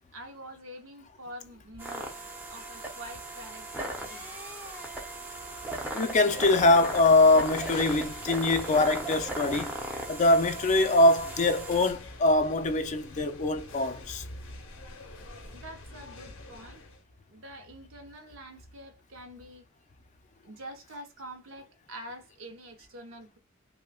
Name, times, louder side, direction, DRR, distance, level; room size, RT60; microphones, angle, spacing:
voice 1, 0.1-4.3 15.5-16.8 17.3-19.6 20.4-23.4, right 1 dB, 70° right, 0.9 m, -46 dB
sound 1, 1.8-11.9, right 2 dB, 10° right, 0.7 m, -38 dB
voice 2, 5.9-9.7 10.1-14.2, left 2 dB, 35° left, 0.4 m, -23 dB
sound 2, 6.3-17.0, left 2 dB, 65° left, 0.8 m, -47 dB
5.3 x 2.2 x 2.3 m
head